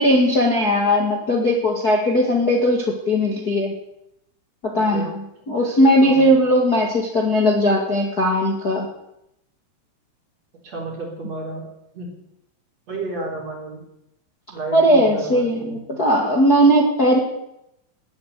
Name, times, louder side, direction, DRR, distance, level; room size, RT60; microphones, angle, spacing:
voice 1, 0.0-3.7 4.6-5.2 5.5-8.9 14.7-17.2, equal, 35° left, 0 dB, 1.5 m, -18 dB
voice 2, 4.7-5.1 6.0-6.3 10.6-11.6 11.9-12.1 12.9-13.8 14.5-16.0, right 3 dB, 35° right, 0 dB, 4.7 m, -32 dB
20.0 x 8.5 x 8.4 m, 0.82 s
omnidirectional pair, 5.4 m